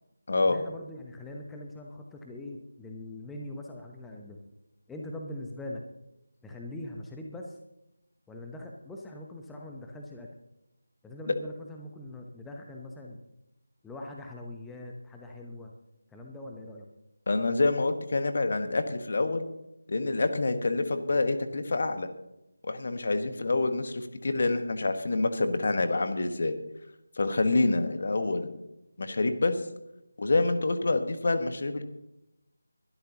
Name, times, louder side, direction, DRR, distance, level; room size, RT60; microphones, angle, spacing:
voice 1, 0.4-4.4 4.9-5.8 6.4-7.6 8.3-10.3 11.0-13.2 13.8-15.7 16.1-16.9, left 1 dB, 5° left, 0 dB, 0.9 m, -42 dB
voice 2, 17.3-19.5 19.9-22.1 22.6-26.6 27.2-28.5 29.0-29.6 30.2-31.8, left 3 dB, 45° left, 8 dB, 1.4 m, -27 dB
21.5 x 12.5 x 3.0 m, 0.88 s
figure-of-eight pair, 160°, 0 cm